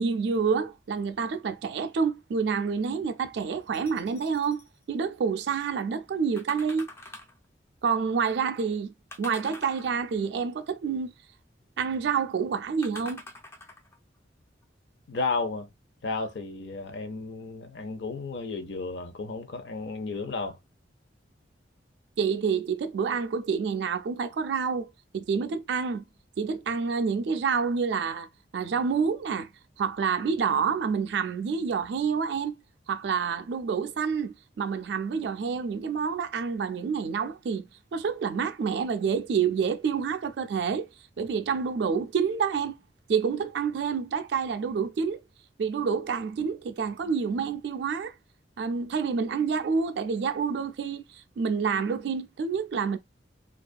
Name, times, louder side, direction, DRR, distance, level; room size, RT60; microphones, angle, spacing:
voice 1, 0.0-6.9 7.8-11.1 11.8-13.2 22.2-24.9 25.1-26.0 26.4-29.5 29.8-32.5 32.9-40.9 41.2-42.8 43.1-45.2 45.6-48.1 48.6-53.0, right 6 dB, 65° right, 0.3 m, -28 dB
sound 1, 3.7-4.7 6.4-7.4 9.1-10.3 12.8-14.0 14.6-14.7, left 2 dB, 15° left, 0.3 m, -45 dB
voice 2, 15.1-15.7 16.0-20.6, left 3 dB, 70° left, 0.5 m, -33 dB
2.5 x 2.3 x 2.3 m
head